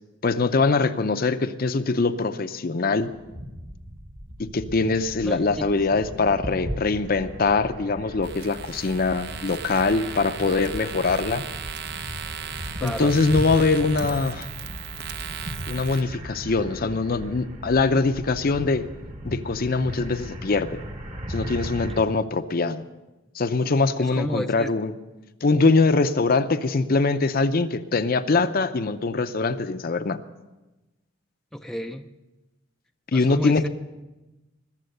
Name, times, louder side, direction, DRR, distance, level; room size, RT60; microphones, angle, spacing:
voice 1, 0.2-3.1 4.4-11.4 12.8-14.5 15.7-18.9 19.2-20.8 21.3-22.8 23.3-24.9 25.4-30.2 33.1-33.7, left 3 dB, 45° left, 11 dB, 0.6 m, -23 dB
sound 1, 3.0-22.0, equal, 35° right, 1.2 m, -37 dB
voice 2, 5.2-6.0 12.7-13.2 24.0-24.7 31.5-32.1 33.1-33.7, equal, ahead, 6 dB, 0.4 m, -32 dB
sound 2, 8.2-16.0, right 7 dB, 55° right, 0.7 m, -37 dB
20.5 x 7.4 x 6.7 m, 1.1 s
head